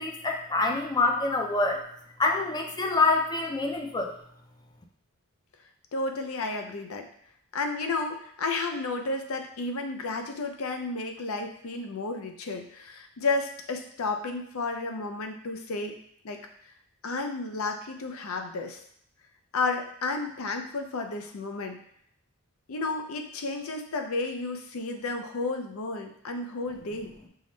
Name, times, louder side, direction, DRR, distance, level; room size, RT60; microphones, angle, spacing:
voice 1, 0.0-1.8 2.2-4.1, left 3 dB, 20° left, 2 dB, 0.4 m, -26 dB
voice 2, 5.9-7.1 7.5-16.0 16.2-16.4 17.0-18.8 19.5-21.8 22.7-27.1, left 3 dB, 70° left, 5 dB, 0.5 m, -32 dB
5.5 x 2.2 x 3.1 m, 0.69 s
head